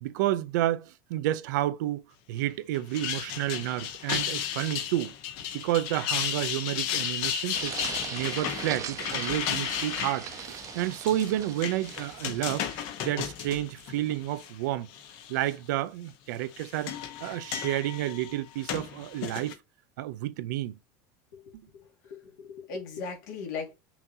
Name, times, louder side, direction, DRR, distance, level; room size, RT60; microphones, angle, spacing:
voice 1, 0.0-2.0 2.3-5.1 5.5-7.8 8.1-12.7 13.0-14.9 15.3-16.9 17.2-19.5 20.0-20.8, right 14 dB, 90° right, 0.5 m, -30 dB
sound 1, 2.7-14.5 14.9-15.5 16.3-19.5, left 9 dB, 65° left, 1.0 m, -34 dB
sound 2, 7.5-12.8, right 9 dB, 35° right, 0.6 m, -40 dB
voice 2, 22.0-23.7, left 5 dB, 80° left, 2.1 m, -38 dB
5.6 x 2.8 x 2.7 m
supercardioid pair, 140°, 10 cm